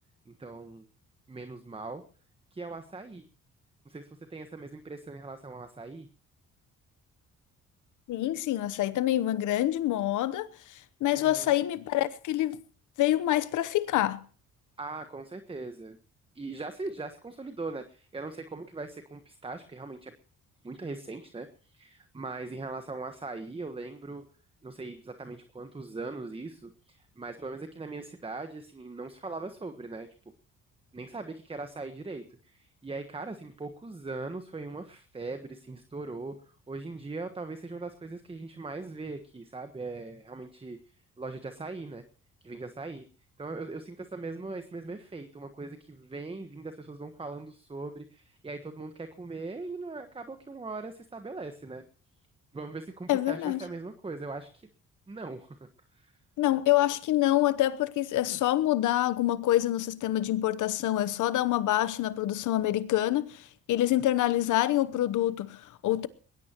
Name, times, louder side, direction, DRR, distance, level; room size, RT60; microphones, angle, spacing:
voice 1, 0.3-0.9 1.3-2.0 2.5-3.3 3.8-6.1 11.1-11.5 14.8-16.0 16.3-20.1 20.6-24.3 24.6-30.1 30.9-36.4 36.7-40.8 41.2-42.0 42.4-43.1 43.4-51.8 52.5-54.7 55.1-55.6 55.9-56.1, right 3 dB, 20° right, 1.3 m, -40 dB
voice 2, 8.1-10.5 11.0-12.6 13.0-14.2 53.1-53.6 56.4-66.1, left 14 dB, 80° left, 1.0 m, -26 dB
20.5 x 18.0 x 3.0 m
cardioid pair, 90°, 30 cm